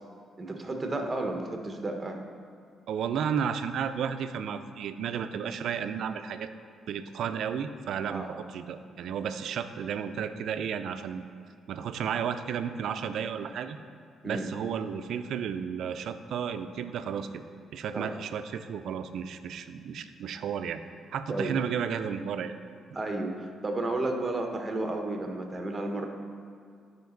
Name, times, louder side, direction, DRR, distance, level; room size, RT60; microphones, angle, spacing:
voice 1, 0.4-2.2 8.1-8.3 14.2-14.5 17.9-18.1 21.3-21.5 22.9-26.1, right 2 dB, 25° right, 3 dB, 1.1 m, -32 dB
voice 2, 2.9-6.5 6.9-8.3 8.5-11.2 11.7-13.8 14.2-17.3 17.7-20.8 21.1-22.6, right 7 dB, 70° right, 10 dB, 0.5 m, -33 dB
11.5 x 5.1 x 4.0 m, 2.3 s
cardioid pair, 90°, 0 cm